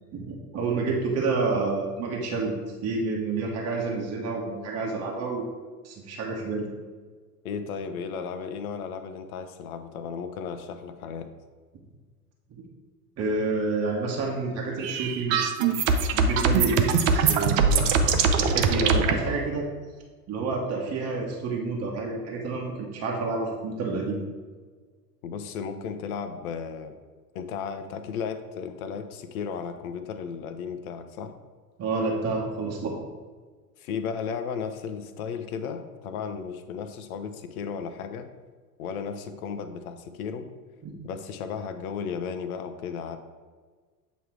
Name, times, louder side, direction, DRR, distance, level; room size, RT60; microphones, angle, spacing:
voice 1, 0.1-2.5 2.8-5.5 5.8-6.6 12.6-12.7 13.2-15.4 16.1-19.7 20.3-24.2 31.8-32.9 40.8-40.9, right 3 dB, 30° right, -2 dB, 1.2 m, -29 dB
voice 2, 7.4-11.3 25.2-27.0 27.3-31.3 33.8-38.3 38.8-40.5 41.0-43.2, left 6 dB, 60° left, 9 dB, 0.8 m, -34 dB
sound 1, 14.8-19.1, right 5 dB, 50° right, 0.8 m, -22 dB
8.0 x 3.1 x 4.7 m, 1.5 s
hypercardioid pair, 90°, 49 cm